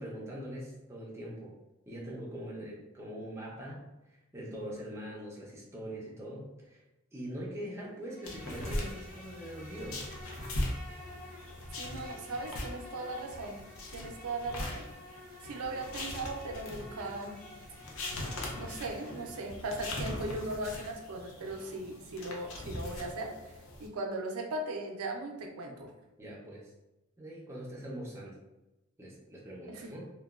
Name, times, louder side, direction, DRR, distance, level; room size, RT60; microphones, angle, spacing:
voice 1, 0.0-1.5 1.9-6.8 7.1-10.0 26.2-26.7 27.2-28.4 29.0-30.1, equal, 10° right, -4 dB, 0.5 m, -42 dB
Insect, 8.0-19.5, left 2 dB, 35° left, 1.1 m, -50 dB
sound 1, 8.2-23.9, left 1 dB, 70° left, 0.5 m, -41 dB
voice 2, 11.8-13.6 13.9-14.9 15.4-17.4 18.6-23.5 23.8-25.9 29.7-29.9, right 2 dB, 85° right, 2 dB, 0.5 m, -38 dB
2.9 x 2.2 x 2.3 m, 0.98 s
head